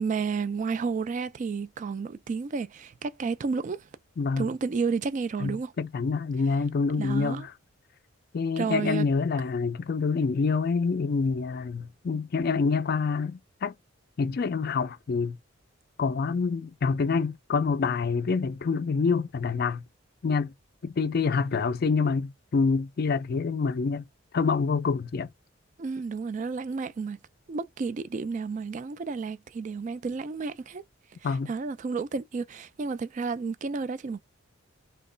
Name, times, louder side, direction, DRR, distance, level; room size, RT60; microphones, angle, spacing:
voice 1, 0.0-3.9 4.4-5.7 7.0-7.5 8.6-9.1 25.8-27.2 27.5-30.8 31.2-34.2, right 5 dB, 40° right, 0.3 m, -31 dB
voice 2, 4.2-4.5 5.4-7.5 8.3-13.7 14.2-15.4 16.0-19.8 20.2-20.5 20.8-24.0 24.3-25.3 31.2-31.5, left 4 dB, 50° left, 0.4 m, -27 dB
3.0 x 2.2 x 3.7 m
head